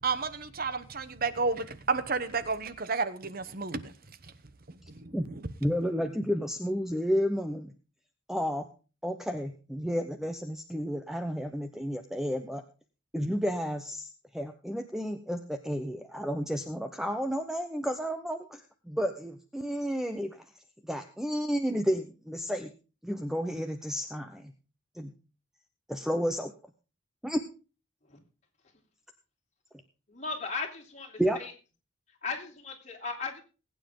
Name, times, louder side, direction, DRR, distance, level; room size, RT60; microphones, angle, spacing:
voice 1, 0.0-3.9 5.0-5.1, right 4 dB, 45° right, 13 dB, 1.0 m, -31 dB
voice 2, 5.6-7.7 8.3-8.7 9.0-12.6 13.1-14.1 14.3-20.4 20.8-22.7 23.0-24.5 24.9-25.1 25.9-26.5 27.2-27.4 31.2-31.4, equal, ahead, 7 dB, 0.8 m, -31 dB
voice 3, 30.1-31.5 32.2-33.4, left 4 dB, 35° left, 1 dB, 3.7 m, -37 dB
20.5 x 9.3 x 3.8 m, 0.35 s
head